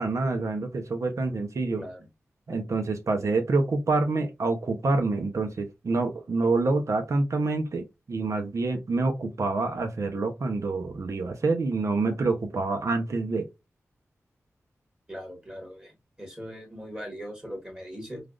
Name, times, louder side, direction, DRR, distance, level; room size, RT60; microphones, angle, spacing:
voice 1, 0.0-1.8 2.5-13.5, right 3 dB, 65° right, 0.7 m, -27 dB
voice 2, 15.1-18.2, equal, 15° right, 1.6 m, -40 dB
3.2 x 2.4 x 2.4 m
cardioid pair, 55°, 5 cm